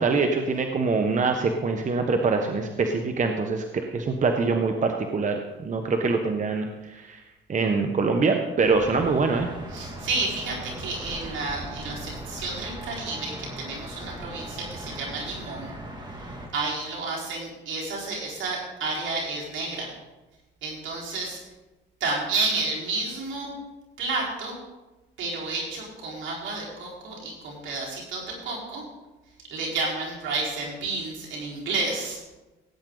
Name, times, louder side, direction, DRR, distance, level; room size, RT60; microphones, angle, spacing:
voice 1, 0.0-7.2 7.5-9.5, right 4 dB, 40° right, 4 dB, 1.1 m, -24 dB
general ambience Mumbai, 8.6-16.5, right 1 dB, 20° right, 2.4 m, -39 dB
voice 2, 9.7-15.7 16.2-19.9 20.6-21.4 22.0-23.5 24.0-24.6 25.2-28.8 29.5-32.2, right 3 dB, 75° right, -4 dB, 4.4 m, -31 dB
17.0 x 9.0 x 3.9 m, 1.1 s
cardioid pair, 90°, 20 cm